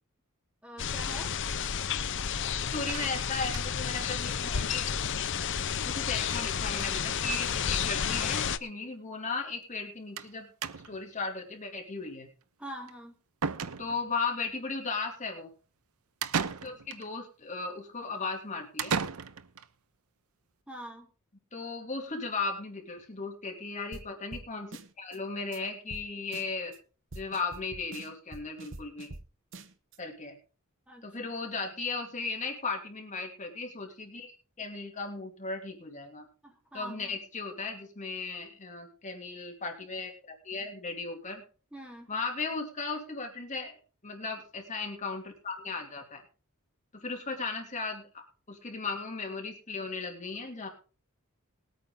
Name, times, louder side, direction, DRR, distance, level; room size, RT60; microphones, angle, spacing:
voice 1, 0.6-1.4 12.6-13.1 20.7-21.1 30.9-31.0 36.4-37.2 41.7-42.1, right 1 dB, 5° right, 1 dB, 2.6 m, -44 dB
Wind in Maple Tree, 0.8-8.6, left 7 dB, 60° left, 0.8 m, -31 dB
voice 2, 2.7-4.8 5.8-10.5 10.8-12.3 13.8-15.5 16.6-19.0 21.5-26.8 27.1-29.1 30.0-30.4 31.0-34.3 34.6-36.3 36.7-40.1 40.4-41.4 42.1-43.8 44.0-46.2 46.9-50.7, left 4 dB, 35° left, 2 dB, 2.8 m, -36 dB
sound 1, 2.9-3.9 4.3-4.4 4.6-4.7 5.0-5.1 6.2-6.5 6.7-7.1 8.0-8.1 8.3-8.4 10.2-10.3 10.6-11.1 12.9-13.0 13.4-14.2 16.2-17.1 18.8-19.7, right 6 dB, 80° right, 0.8 m, -35 dB
sound 2, 23.9-24.0 24.3-24.4 24.7-25.2 25.5-25.6 25.9-26.0 26.3-26.8 27.1-29.2 29.5-30.0, right 2 dB, 60° right, 1.1 m, -45 dB
20.5 x 9.0 x 3.8 m, 0.37 s
head